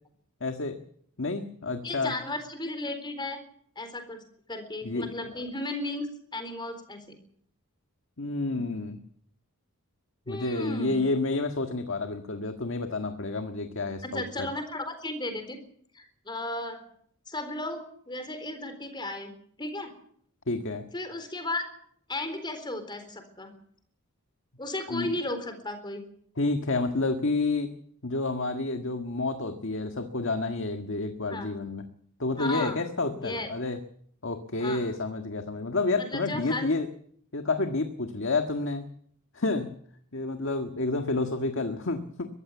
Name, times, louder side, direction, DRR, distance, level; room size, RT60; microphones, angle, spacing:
voice 1, 0.4-0.8 1.2-2.1 4.8-5.1 8.2-9.0 10.3-14.5 20.5-20.9 24.9-25.1 26.4-27.7 28.0-31.9 32.2-33.8 34.2-36.9 37.3-38.9 39.3-39.7 40.1-42.3, left 3 dB, 60° left, 6 dB, 1.7 m, -29 dB
voice 2, 1.8-3.4 3.8-4.2 4.5-7.2 8.5-8.7 10.3-11.0 14.0-15.6 15.9-16.8 17.3-19.3 19.6-19.9 20.9-21.7 22.1-23.5 24.6-26.0 31.3-31.5 32.4-32.8 33.1-33.5 34.6-34.8 36.0-36.7, left 2 dB, 20° left, 8 dB, 4.0 m, -34 dB
22.5 x 14.5 x 8.2 m, 0.65 s
head